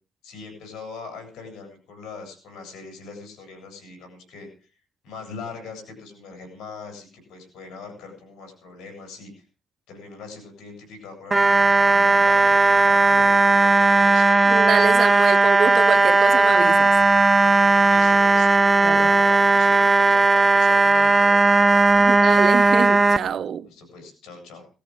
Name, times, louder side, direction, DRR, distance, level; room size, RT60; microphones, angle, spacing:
voice 1, 0.2-4.7 5.0-9.4 9.9-14.4 17.8-22.1 23.6-24.7, left 4 dB, 80° left, 7.8 m, -41 dB
sound 1, 11.3-23.2, right 3 dB, 20° right, 0.8 m, -16 dB
voice 2, 14.5-16.9 18.8-19.1 22.0-23.7, right 7 dB, 60° right, 0.9 m, -26 dB
18.5 x 15.0 x 3.9 m
cardioid pair, 90°, 0 cm